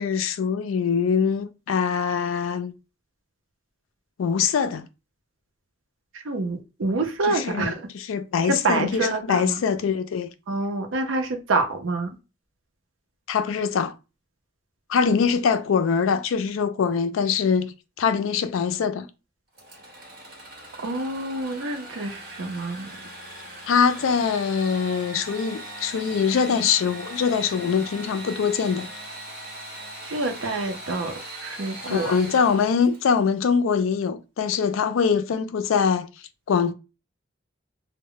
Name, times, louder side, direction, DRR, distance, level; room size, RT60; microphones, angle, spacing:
voice 1, 0.0-2.7 4.2-4.9 7.3-10.3 13.3-13.9 14.9-19.1 23.7-28.9 31.9-36.1 36.5-36.7, left 6 dB, 80° left, 0.3 m, -23 dB
voice 2, 6.2-7.9 8.5-9.6 10.5-12.1 20.8-22.9 30.1-31.1 31.4-32.1, right 3 dB, 75° right, 0.6 m, -27 dB
Engine / Sawing, 19.5-33.3, right 1 dB, 45° right, 1.0 m, -40 dB
2.1 x 2.0 x 3.8 m
head